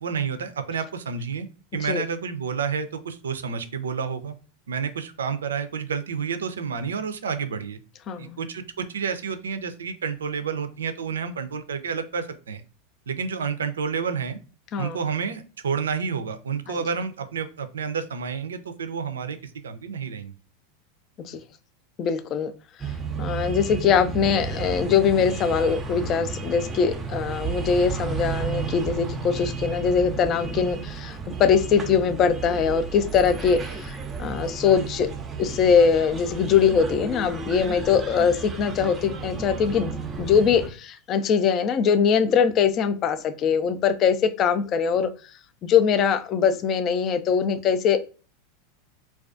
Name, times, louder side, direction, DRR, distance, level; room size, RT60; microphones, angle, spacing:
voice 1, 0.0-1.5 1.7-4.4 4.7-7.8 8.2-8.6 8.9-12.6 13.1-14.4 14.8-20.3, right 6 dB, 85° right, 9 dB, 0.3 m, -30 dB
voice 2, 8.1-8.4 14.7-15.0 16.7-16.8 21.2-21.4 22.0-22.5 22.8-22.9 23.2-35.1 35.4-39.9 40.2-45.1 45.6-48.0, left 7 dB, 40° left, 11 dB, 0.3 m, -22 dB
sound 1, 22.8-40.7, right 5 dB, 20° right, 0.5 m, -33 dB
2.3 x 2.2 x 2.4 m, 0.36 s
hypercardioid pair, 95°, 0 cm